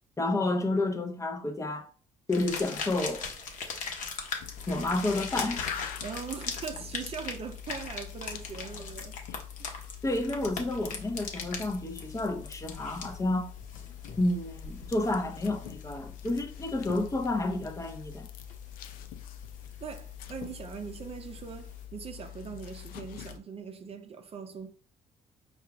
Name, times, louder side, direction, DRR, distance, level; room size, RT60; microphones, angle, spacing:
voice 1, 0.2-1.9 2.3-3.2 4.7-5.6 10.0-13.5 14.2-18.3, left 2 dB, 20° left, 0.7 m, -30 dB
sound 1, 2.3-21.8, left 5 dB, 65° left, 0.9 m, -41 dB
sound 2, 4.4-23.4, left 11 dB, 85° left, 0.4 m, -44 dB
voice 2, 6.0-9.2 9.6-9.9 19.8-24.7, right 6 dB, 45° right, 0.5 m, -41 dB
4.6 x 2.4 x 3.3 m
cardioid pair, 80°, 14 cm